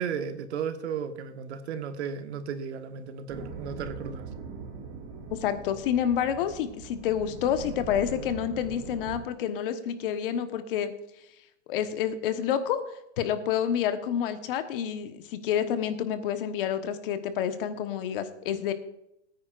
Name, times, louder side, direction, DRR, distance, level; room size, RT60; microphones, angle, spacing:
voice 1, 0.0-4.3, right 7 dB, 70° right, 8 dB, 1.4 m, -34 dB
sound 1, 3.3-9.2, right 4 dB, 45° right, 2.1 m, -41 dB
voice 2, 5.3-10.9 11.7-12.8 13.2-18.7, left 9 dB, 50° left, 9 dB, 1.2 m, -28 dB
18.5 x 9.6 x 2.5 m, 0.82 s
supercardioid pair, 160°, 34 cm